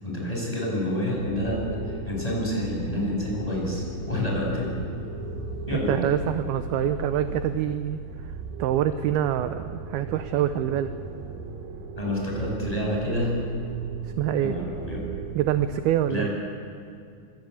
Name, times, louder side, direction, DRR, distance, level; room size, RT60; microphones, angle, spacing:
voice 1, 0.0-4.7 5.7-6.0 12.0-13.4 14.4-15.1 16.1-16.3, left 1 dB, 10° left, -3 dB, 7.8 m, -28 dB
sound 1, 1.1-15.8, right 4 dB, 60° right, 3.6 m, -38 dB
sound 2, 1.6-7.8, left 7 dB, 85° left, 1.7 m, -39 dB
voice 2, 5.7-8.0 8.6-10.9 14.2-14.5 15.4-16.3, right 11 dB, 75° right, 10 dB, 2.5 m, -25 dB
27.0 x 25.0 x 8.5 m, 2.4 s
omnidirectional pair, 5.0 m